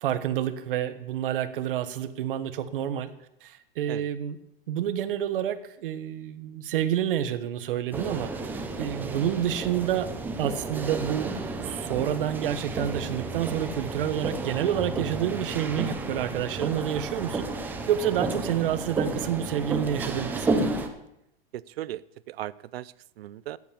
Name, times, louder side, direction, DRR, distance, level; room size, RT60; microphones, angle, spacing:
voice 1, 0.0-3.1 3.4-4.4 4.7-10.1 10.4-11.3 11.6-20.7, right 10 dB, 60° right, 11 dB, 1.3 m, -29 dB
sound 1, 7.9-20.9, right 3 dB, 5° right, 0.6 m, -32 dB
voice 2, 21.5-23.6, right 14 dB, 80° right, 19 dB, 0.6 m, -38 dB
13.5 x 8.6 x 7.1 m, 0.80 s
supercardioid pair, 170°, 30 cm